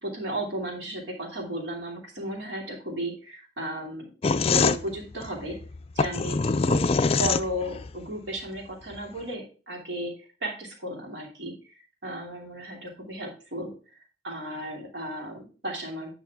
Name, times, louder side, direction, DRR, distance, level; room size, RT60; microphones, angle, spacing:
voice 1, 0.0-4.1 4.5-5.6 5.9-6.8 7.2-10.1 10.4-11.7 12.0-13.7 14.2-16.1, right 1 dB, 80° right, 0 dB, 2.7 m, -34 dB
sound 1, 4.2-7.9, left 4 dB, 35° left, 0.4 m, -24 dB
9.3 x 5.6 x 3.6 m, 0.36 s
head